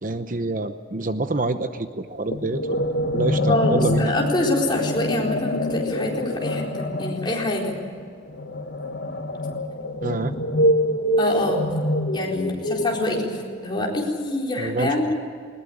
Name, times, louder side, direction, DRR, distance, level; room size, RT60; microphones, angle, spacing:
voice 1, 0.0-2.8 3.1-4.1 10.0-10.3 14.6-15.1, right 2 dB, 45° right, 9 dB, 0.9 m, -27 dB
sound 1, 2.3-13.6, equal, 60° left, 2.0 m, -25 dB
voice 2, 3.5-7.7 11.2-11.6 12.1-13.4 13.6-15.1, left 2 dB, 25° left, -2 dB, 4.2 m, -25 dB
20.0 x 20.0 x 8.7 m, 2.2 s
head